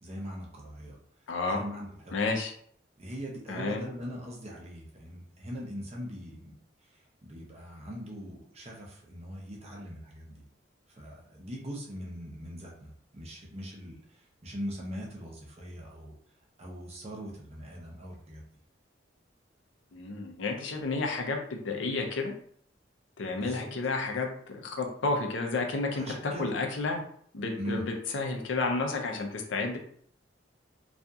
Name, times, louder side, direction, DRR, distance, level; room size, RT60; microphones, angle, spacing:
voice 1, 0.0-1.0 1.5-2.2 3.0-6.5 6.8-10.4 10.9-16.1 16.6-18.4 23.3-23.7 25.9-26.5 27.6-27.8, equal, 35° right, -2 dB, 0.6 m, -41 dB
voice 2, 1.3-1.6 2.1-2.5 3.5-3.8 19.9-22.3 23.2-27.0 27.3-29.8, left 3 dB, 75° left, 2 dB, 0.5 m, -31 dB
2.7 x 2.4 x 2.3 m, 0.62 s
head